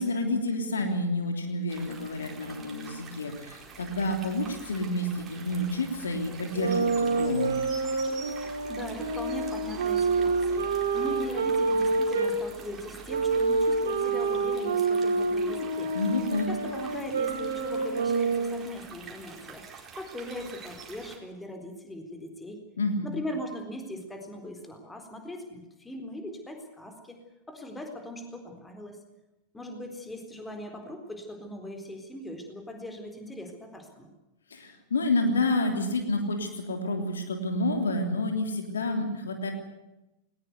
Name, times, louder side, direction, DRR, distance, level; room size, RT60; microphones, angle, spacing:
voice 1, 0.0-7.5 15.9-16.5 22.8-23.1 34.5-39.5, left 2 dB, 70° left, 5 dB, 3.2 m, -29 dB
sound 1, 1.7-21.2, right 4 dB, 25° right, 4.6 m, -46 dB
sound 2, 6.5-12.3 13.1-18.7, right 3 dB, 65° right, 3.8 m, -27 dB
voice 2, 8.7-15.9 16.5-22.6 23.0-27.2 27.5-29.0 29.5-34.1, left 1 dB, 10° left, 5 dB, 4.0 m, -40 dB
20.0 x 20.0 x 8.1 m, 0.95 s
figure-of-eight pair, 90°, 0 cm